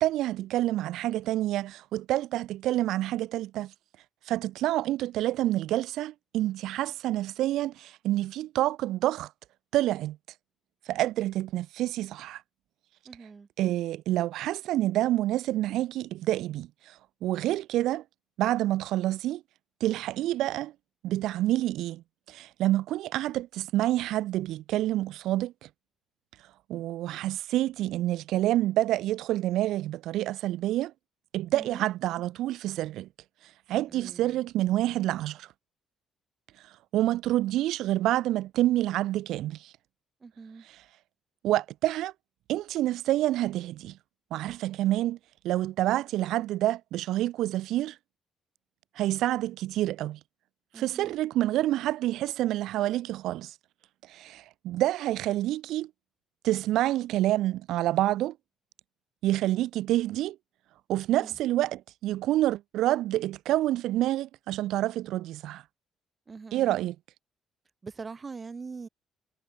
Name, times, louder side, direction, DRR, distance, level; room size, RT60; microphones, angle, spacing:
voice 1, 0.0-3.7 4.3-9.3 9.7-10.2 10.9-12.4 13.6-18.0 18.4-19.4 19.8-20.7 21.0-25.7 26.7-30.9 31.3-33.1 33.7-35.5 36.9-39.7 41.4-42.1 42.5-44.0 44.3-45.2 45.4-48.0 49.0-50.2 50.7-53.5 54.1-55.9 56.4-58.4 59.2-60.4 60.9-65.6 66.5-66.9, right 14 dB, 80° right, 0.5 m, -28 dB
voice 2, 13.0-13.5 31.5-31.8 33.9-34.4 40.2-40.7 50.7-51.1 61.2-61.4 66.3-66.8 67.8-68.9, right 4 dB, 25° right, 1.0 m, -43 dB
cardioid pair, 145°, 0 cm